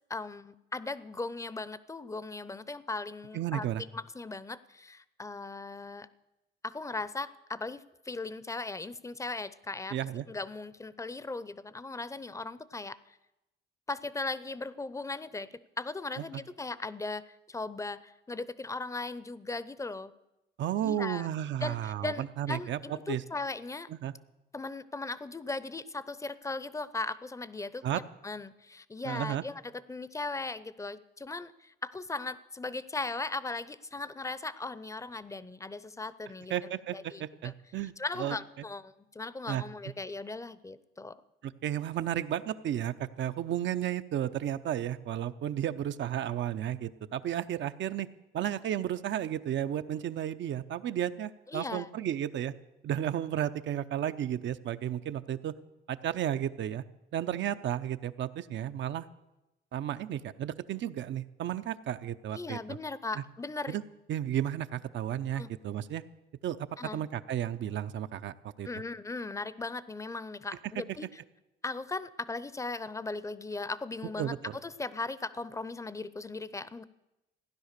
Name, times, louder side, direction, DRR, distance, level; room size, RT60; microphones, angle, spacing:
voice 1, 0.1-6.1 6.6-10.0 10.3-13.2 13.9-20.1 20.8-21.3 21.6-23.9 24.5-29.6 29.9-36.5 36.9-37.5 38.0-41.2 51.5-51.9 62.3-63.8 65.3-65.5 66.8-67.0 68.6-71.1 71.6-76.8, left 3 dB, 15° left, 17 dB, 0.6 m, -38 dB
voice 2, 3.3-3.8 9.9-10.2 20.6-22.8 23.1-23.2 23.9-24.1 27.8-28.0 29.0-29.4 36.5-37.9 38.2-38.3 39.5-39.6 41.4-48.1 48.3-52.5 52.8-55.5 55.9-56.8 57.1-59.1 59.7-62.8 63.2-63.3 63.7-63.8 64.1-66.0 66.4-66.7 66.9-68.7 74.2-74.6, right 11 dB, 70° right, 11 dB, 0.7 m, -33 dB
16.0 x 10.5 x 6.7 m, 0.96 s
cardioid pair, 90°, 20 cm